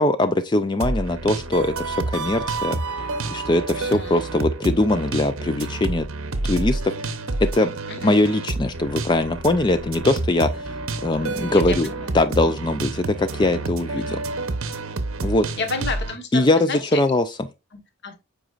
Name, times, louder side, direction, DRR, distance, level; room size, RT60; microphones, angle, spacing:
voice 1, 0.0-6.1 6.4-6.9 7.4-7.7 8.0-10.7 11.0-11.9 12.1-14.2 15.2-15.5 16.3-17.2, left 2 dB, 20° left, 0.3 m, -21 dB
sound 1, 0.8-16.2, right 2 dB, 70° right, 0.8 m, -29 dB
voice 2, 3.7-4.2 7.9-8.1 11.5-12.2 12.4-12.6 14.0-14.2 15.6-17.0 17.7-18.2, left 4 dB, 50° left, 1.2 m, -32 dB
7.8 x 5.0 x 2.4 m
head